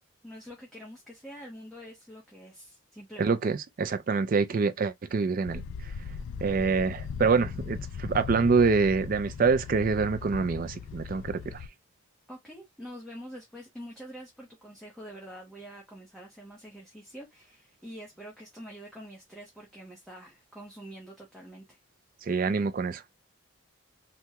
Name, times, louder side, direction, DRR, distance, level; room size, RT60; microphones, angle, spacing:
voice 1, 0.2-3.5 12.3-21.8, equal, ahead, 0.7 m, -46 dB
voice 2, 3.2-5.6 6.4-11.6 22.2-23.0, right 4 dB, 40° right, 0.3 m, -26 dB
sound 1, 5.5-11.7, left 6 dB, 70° left, 0.3 m, -38 dB
3.4 x 2.1 x 2.8 m
head